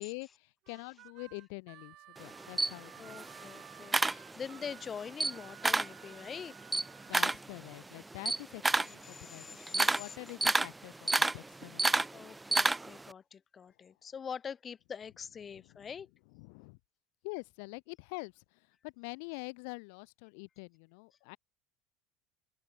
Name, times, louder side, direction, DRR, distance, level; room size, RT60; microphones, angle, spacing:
voice 1, 0.0-3.2 7.1-12.2 15.5-15.9 16.3-16.8 17.2-21.4, left 33 dB, 75° left, 2.8 m, -46 dB
Harmonica, 0.6-7.2, right 16 dB, 55° right, 3.0 m, -55 dB
Camera, 2.2-4.7 5.1-6.0 6.4-13.1, right 2 dB, 10° right, 0.7 m, -30 dB
voice 2, 3.0-6.5 8.8-10.2 12.1-16.1, left 7 dB, 30° left, 3.0 m, -44 dB
supercardioid pair, 115°, 0 cm